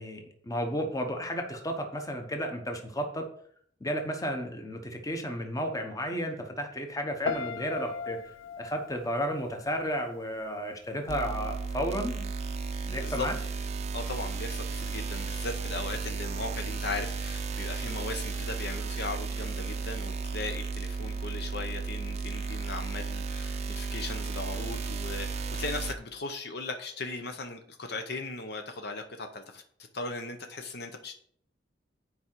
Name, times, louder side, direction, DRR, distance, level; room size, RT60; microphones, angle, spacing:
voice 1, 0.0-3.2 3.8-8.2 8.6-12.3 12.8-13.3, equal, 20° left, 4 dB, 1.0 m, -33 dB
Piano, 7.2-10.3 10.6-11.1, left 5 dB, 85° left, 0.5 m, -38 dB
sound 1, 11.1-25.9, right 4 dB, 35° right, 0.5 m, -34 dB
voice 2, 13.9-29.6 29.9-31.1, left 3 dB, 60° left, 5 dB, 0.8 m, -38 dB
8.3 x 4.9 x 4.5 m, 0.63 s
head